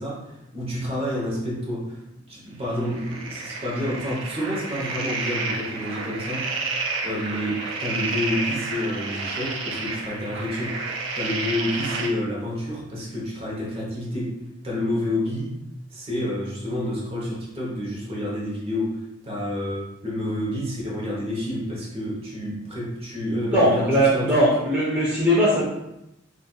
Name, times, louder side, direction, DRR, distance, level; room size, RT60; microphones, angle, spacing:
voice 1, 0.0-6.5 7.0-10.8 11.1-14.4 14.6-15.5 15.9-24.5, left 1 dB, 30° right, -4 dB, 1.0 m, -29 dB
sound 1, 2.8-12.1, right 3 dB, 80° right, 0.6 m, -30 dB
voice 2, 23.5-25.6, equal, 5° right, -8 dB, 0.6 m, -20 dB
4.2 x 2.5 x 2.3 m, 0.86 s
head